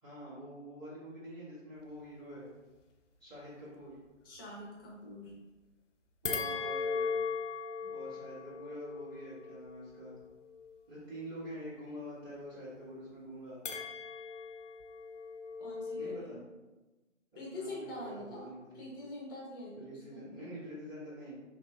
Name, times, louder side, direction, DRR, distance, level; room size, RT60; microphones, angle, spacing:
voice 1, 0.0-2.5 3.2-4.0 6.2-7.2 7.8-10.2 10.9-13.6 15.9-16.4 17.3-18.8 19.7-21.3, equal, 10° right, -12 dB, 1.3 m, -46 dB
voice 2, 4.2-5.3 15.6-16.4 17.4-20.5, left 1 dB, 20° left, -5 dB, 0.7 m, -45 dB
sound 1, 6.2-10.7 13.6-16.2, left 5 dB, 70° left, 0.6 m, -38 dB
5.8 x 2.0 x 2.3 m, 1.1 s
figure-of-eight pair, 140°, 38 cm